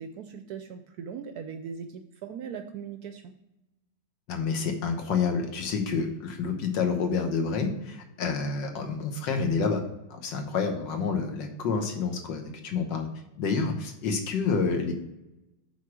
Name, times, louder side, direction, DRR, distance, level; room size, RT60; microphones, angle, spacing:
voice 1, 0.0-3.3, right 7 dB, 75° right, 8 dB, 0.9 m, -39 dB
voice 2, 4.3-9.8 10.1-13.1 13.4-14.9, left 5 dB, 75° left, 4 dB, 1.7 m, -28 dB
7.2 x 4.2 x 5.9 m, 0.93 s
omnidirectional pair, 2.0 m